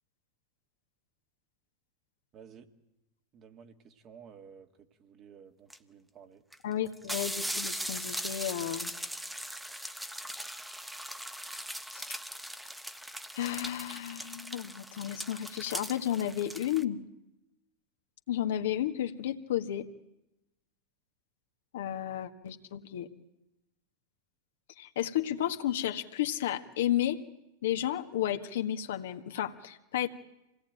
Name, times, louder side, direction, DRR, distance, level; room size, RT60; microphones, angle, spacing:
voice 1, 2.3-2.7 3.3-6.4, right 7 dB, 40° right, 6 dB, 1.9 m, -53 dB
sound 1, 5.7-5.8 6.5-6.6 6.9-16.8, equal, 5° right, 1.0 m, -39 dB
voice 2, 6.6-9.0 11.9-12.1 13.3-17.0 18.3-19.9 21.7-23.1 24.7-27.2 27.6-30.1, left 11 dB, 70° left, 5 dB, 1.5 m, -32 dB
26.0 x 17.5 x 9.2 m, 0.94 s
hypercardioid pair, 100°, 0 cm